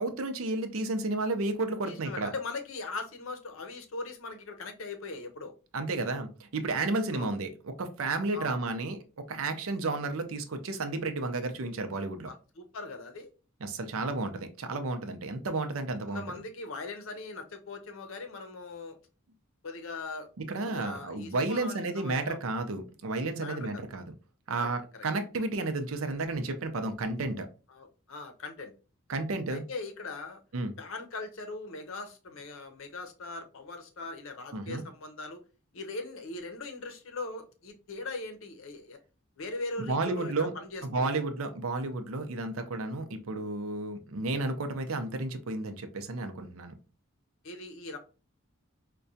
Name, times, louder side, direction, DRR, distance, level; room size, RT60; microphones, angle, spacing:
voice 1, 0.0-2.3 5.7-12.3 13.6-16.2 20.4-24.1 24.5-27.5 29.1-29.6 30.5-30.7 34.5-34.8 39.8-40.5 40.8-46.8, right 3 dB, 75° right, 0.6 m, -32 dB
voice 2, 1.8-5.5 7.1-7.3 8.3-8.5 12.3-13.3 16.1-19.0 19.6-20.3 20.7-22.4 23.4-23.8 24.6-24.7 27.7-28.7 29.5-30.4 30.8-35.4 35.7-39.0 39.4-41.2 47.4-48.0, left 3 dB, 70° left, 0.6 m, -40 dB
4.7 x 2.2 x 2.6 m
head